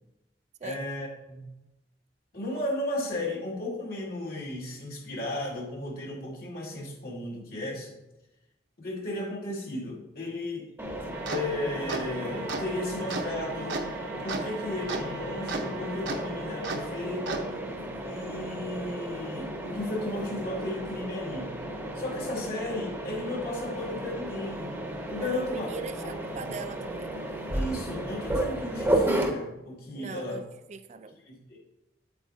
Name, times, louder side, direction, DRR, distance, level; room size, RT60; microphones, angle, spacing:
voice 1, 0.6-1.5 2.3-8.0 8.8-10.7 11.3-13.8 14.2-17.5 18.0-21.5 21.9-24.7 25.1-25.7 26.0-26.1 27.5-30.4 31.3-31.6, left 1 dB, 55° left, -3 dB, 2.2 m, -34 dB
Mechanisms, 10.8-29.3, right 1 dB, 10° right, 0.9 m, -34 dB
sound 1, 11.1-17.4, right 3 dB, 75° right, 0.9 m, -36 dB
voice 2, 25.2-27.1 29.9-30.4 30.7-31.1, right 4 dB, 40° right, 10 dB, 0.4 m, -40 dB
8.7 x 8.1 x 2.7 m, 0.95 s
head